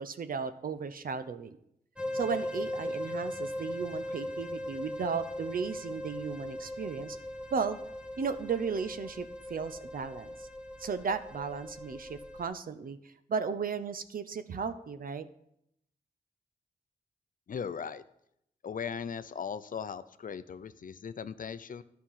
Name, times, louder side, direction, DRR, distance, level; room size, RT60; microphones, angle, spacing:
voice 1, 0.0-1.5 2.1-7.2 7.5-7.8 8.2-10.5 10.8-13.0 13.3-15.3, right 5 dB, 60° right, 12 dB, 0.7 m, -35 dB
sound 1, 2.0-12.4, left 1 dB, 5° right, 1.3 m, -39 dB
voice 2, 17.5-18.0 18.6-21.8, left 7 dB, 55° left, 14 dB, 0.6 m, -38 dB
11.0 x 5.8 x 5.8 m, 0.76 s
cardioid pair, 50°, 17 cm